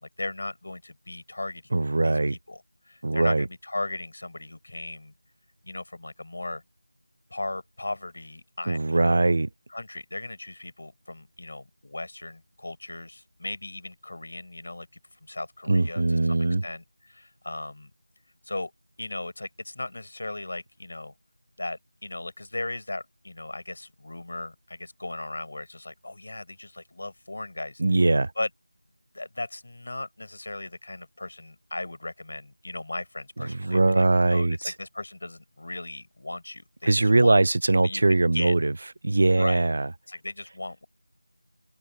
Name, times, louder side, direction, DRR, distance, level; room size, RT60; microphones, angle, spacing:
voice 1, 0.0-5.1 5.6-6.6 7.3-9.2 9.7-14.9 15.2-17.9 18.4-18.7 19.0-21.1 21.6-27.8 28.4-28.5 29.1-37.4 37.8-38.5 39.3-39.6 40.1-40.9, left 2 dB, 55° left, 4.5 m, -37 dB
voice 2, 1.7-2.3 3.0-3.4 8.7-9.5 15.7-16.6 27.8-28.3 33.5-34.7 36.8-38.7 39.0-39.9, right 2 dB, 45° right, 0.5 m, -21 dB
figure-of-eight pair, 175°, 0 cm